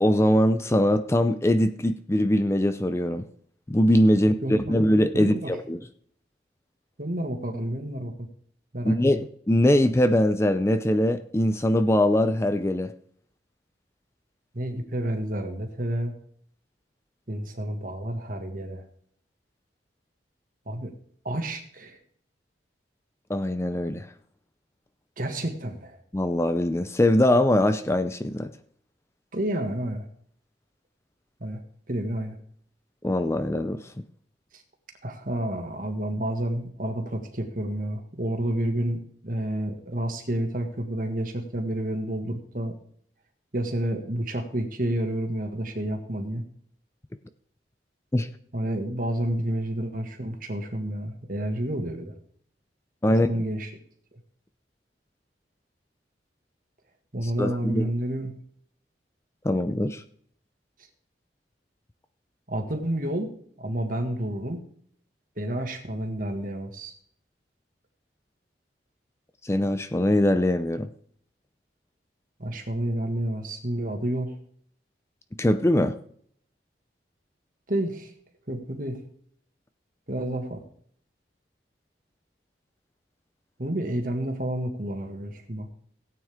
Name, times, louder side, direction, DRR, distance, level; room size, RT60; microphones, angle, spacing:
voice 1, 0.0-3.3 3.7-5.8 8.8-12.9 23.3-24.1 26.1-28.5 33.0-33.8 48.1-48.3 53.0-53.3 57.4-57.9 59.4-60.0 69.4-70.9 75.4-75.9, left 1 dB, 15° left, 0.5 m, -22 dB
voice 2, 4.1-4.7 5.1-5.6 7.0-8.3 8.7-9.0 14.5-16.1 17.3-18.8 20.7-20.9 21.2-22.0 25.2-26.0 29.3-30.1 31.4-31.6 31.9-32.4 35.0-42.7 43.5-46.4 48.5-52.1 53.1-53.7 57.1-58.3 62.5-64.6 65.4-66.9 72.4-74.4 77.7-78.1 78.5-79.0 80.1-80.6 83.6-85.7, right 1 dB, 50° right, 1.9 m, -30 dB
17.0 x 9.0 x 3.6 m
head